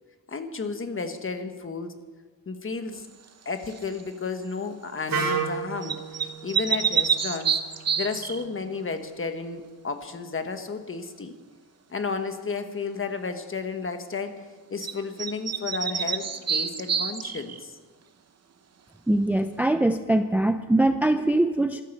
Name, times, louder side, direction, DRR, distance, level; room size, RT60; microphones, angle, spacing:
voice 1, 0.3-2.0 2.5-3.0 3.4-7.6 8.0-11.3 11.9-17.7, left 4 dB, 35° left, 8 dB, 1.2 m, -33 dB
sound 1, 3.7-4.0 5.8-8.4 14.8-14.9 15.2-17.6, right 7 dB, 45° right, 0.8 m, -27 dB
Wind instrument woodwind instrument, 5.1-9.0, right 5 dB, 65° right, 2.7 m, -33 dB
voice 2, 19.1-21.8, right 1 dB, 5° right, 9 dB, 0.4 m, -22 dB
14.0 x 12.5 x 7.1 m, 1.4 s
wide cardioid pair, 155°, 37 cm